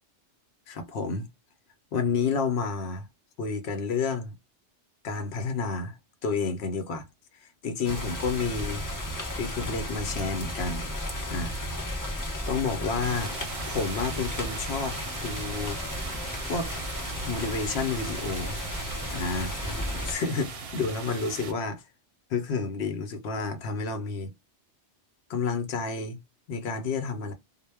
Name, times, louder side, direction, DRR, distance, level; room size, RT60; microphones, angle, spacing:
voice 1, 0.7-1.3 1.9-3.1 3.4-4.3 5.0-6.0 6.2-7.1 7.4-8.8 9.3-10.9 11.3-11.5 12.5-13.3 13.7-15.8 16.4-16.7 17.2-18.6 19.1-19.5 20.1-21.8 22.3-24.3 25.3-26.2 26.5-27.3, left 4 dB, 70° left, 0.8 m, -30 dB
sound 1, 7.8-20.2, left 1 dB, 25° left, 0.4 m, -34 dB
sound 2, 13.0-21.5, right 4 dB, 65° right, 0.7 m, -39 dB
2.1 x 2.0 x 3.3 m
omnidirectional pair, 1.2 m